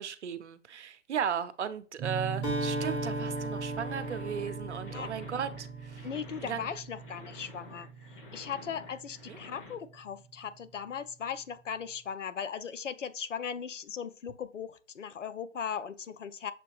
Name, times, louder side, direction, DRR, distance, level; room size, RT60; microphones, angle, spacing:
voice 1, 0.0-6.1 6.4-6.7 9.3-9.4, right 7 dB, 70° right, 0.7 m, -36 dB
sound 1, 2.0-10.7, right 6 dB, 20° right, 0.8 m, -41 dB
Acoustic guitar, 2.4-6.3, equal, 15° left, 1.3 m, -37 dB
sound 2, 3.2-9.7, left 4 dB, 45° left, 1.2 m, -51 dB
voice 2, 6.0-7.9 8.3-16.5, left 7 dB, 85° left, 0.7 m, -38 dB
6.7 x 2.8 x 2.4 m
hypercardioid pair, 145°, 36 cm